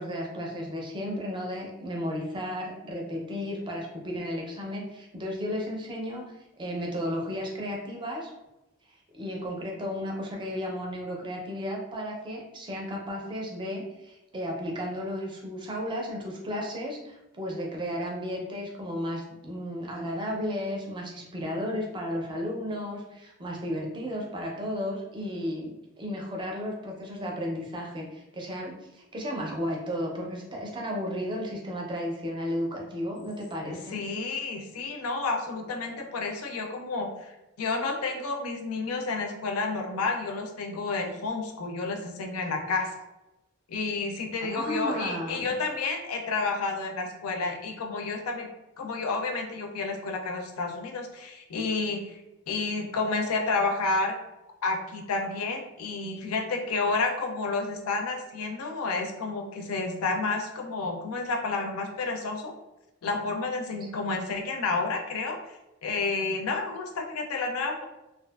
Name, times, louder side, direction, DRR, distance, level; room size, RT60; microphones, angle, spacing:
voice 1, 0.0-8.3 9.1-34.0 44.4-45.5, equal, 20° right, -1 dB, 0.5 m, -34 dB
voice 2, 33.6-43.0 43.7-48.5 48.8-52.2 52.5-54.2 54.6-62.5 63.0-65.4 65.8-67.8, left 3 dB, 85° left, 3 dB, 0.5 m, -30 dB
2.5 x 2.4 x 2.3 m, 0.96 s
head